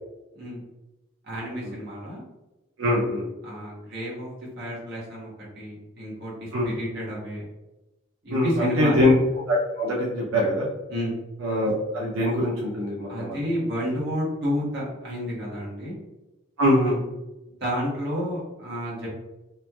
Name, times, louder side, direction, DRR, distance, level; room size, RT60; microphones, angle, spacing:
voice 1, 1.2-2.2 3.4-7.5 8.2-9.1 10.9-11.1 13.1-16.0 17.6-19.1, equal, 50° right, -5 dB, 1.0 m, -31 dB
voice 2, 2.8-3.2 6.5-6.7 8.3-9.1 9.5-10.7 11.4-13.4 16.6-17.0, left 1 dB, 80° right, -4 dB, 0.5 m, -23 dB
3.1 x 2.4 x 2.3 m, 1.0 s
head